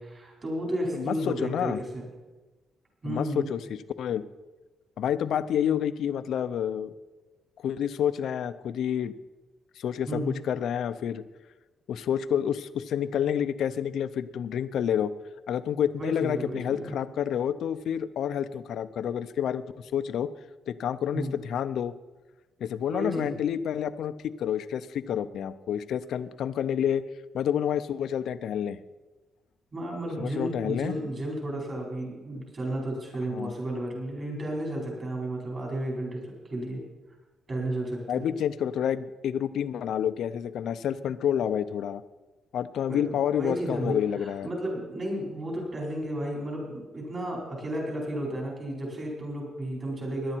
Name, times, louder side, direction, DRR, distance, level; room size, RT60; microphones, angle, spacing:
voice 1, 0.0-2.0 3.0-3.5 10.1-10.4 16.0-16.9 21.1-21.4 22.9-23.4 29.7-36.8 37.5-38.3 42.9-50.4, right 1 dB, 30° right, -2 dB, 4.8 m, -33 dB
voice 2, 0.9-1.8 3.0-4.2 5.0-6.9 7.6-9.1 9.8-11.2 11.9-15.1 15.5-20.3 20.7-21.9 22.6-27.0 27.3-28.8 30.2-30.9 33.3-33.5 38.1-42.0 42.5-44.5, left 9 dB, 65° left, 13 dB, 0.6 m, -29 dB
17.5 x 11.0 x 4.5 m, 1.2 s
cardioid pair, 160°, 0 cm